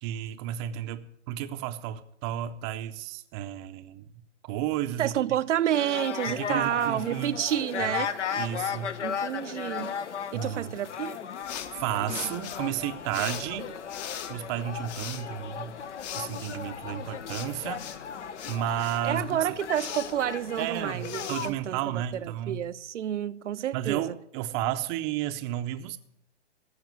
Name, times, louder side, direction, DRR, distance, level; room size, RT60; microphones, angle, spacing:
voice 1, 0.0-5.2 6.3-7.4 7.8-7.9 8.4-9.0 10.3-10.7 11.5-13.7 14.3-15.8 16.1-17.8 18.5-19.5 20.6-22.7 23.7-26.0, right 12 dB, 25° right, 0.6 m, -32 dB
voice 2, 5.0-8.1 9.0-10.0 10.3-11.2 19.0-24.1, right 11 dB, 80° right, 0.6 m, -29 dB
sound 1, 5.7-21.5, left 7 dB, 80° left, 1.1 m, -36 dB
sound 2, 11.4-22.4, left 9 dB, 35° left, 0.9 m, -42 dB
14.5 x 5.8 x 9.4 m
hypercardioid pair, 140°, 35 cm